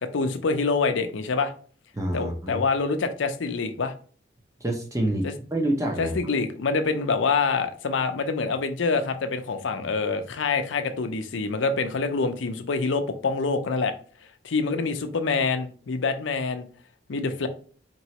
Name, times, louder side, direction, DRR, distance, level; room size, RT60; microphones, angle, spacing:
voice 1, 0.1-1.5 2.1-3.9 5.2-5.3 6.0-13.9 14.4-16.7 17.1-17.5, left 4 dB, 85° left, 0.5 m, -26 dB
voice 2, 1.9-2.6 4.6-6.1, right 1 dB, 15° right, 0.7 m, -27 dB
4.5 x 3.0 x 2.9 m
head